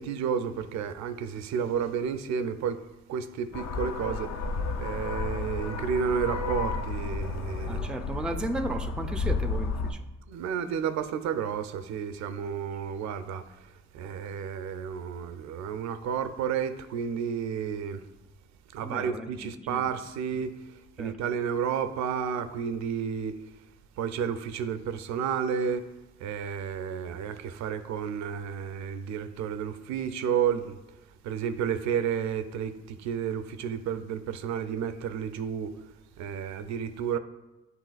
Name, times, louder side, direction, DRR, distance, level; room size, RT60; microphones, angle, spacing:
voice 1, 0.0-2.8 3.1-4.3 4.8-7.9 10.3-13.4 13.9-18.0 18.7-20.6 21.0-23.4 24.0-25.9 26.2-30.8 31.2-35.7 36.2-37.2, right 7 dB, 65° right, 0.4 m, -31 dB
sound 1, 3.5-9.9, left 3 dB, 60° left, 0.5 m, -32 dB
voice 2, 7.7-10.1 18.8-19.9 21.0-21.2, right 1 dB, 5° right, 0.3 m, -35 dB
7.7 x 2.8 x 2.4 m
hypercardioid pair, 45°, 30 cm